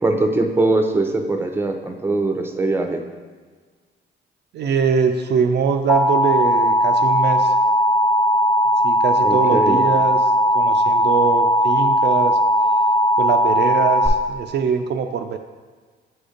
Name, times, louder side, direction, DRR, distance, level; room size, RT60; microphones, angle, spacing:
voice 1, 0.0-3.0 9.2-9.8, right 2 dB, 10° right, 4 dB, 0.6 m, -21 dB
voice 2, 4.5-7.5 8.8-10.2 10.5-12.4 13.2-15.4, right 6 dB, 60° right, 5 dB, 0.4 m, -22 dB
Alarm, 5.9-14.1, equal, 15° left, 1.0 m, -17 dB
7.7 x 2.6 x 5.0 m, 1.5 s
cardioid pair, 90°, 20 cm